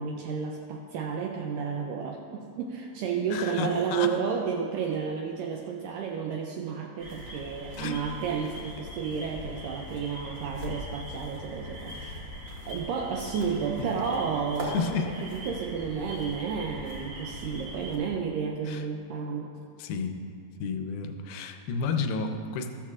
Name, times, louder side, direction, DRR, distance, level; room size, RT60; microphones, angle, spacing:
voice 1, 0.0-12.2 12.7-14.8 15.3-19.5, right 6 dB, 85° right, 1 dB, 1.9 m, -31 dB
voice 2, 3.3-4.2 7.8-8.0 13.8-13.9 14.6-15.3 18.6-18.9 19.8-20.2 20.6-22.7, left 4 dB, 80° left, 5 dB, 2.5 m, -31 dB
sound 1, 7.0-18.0, equal, 55° right, 0.9 m, -40 dB
14.0 x 13.0 x 2.4 m, 2.4 s
omnidirectional pair, 4.5 m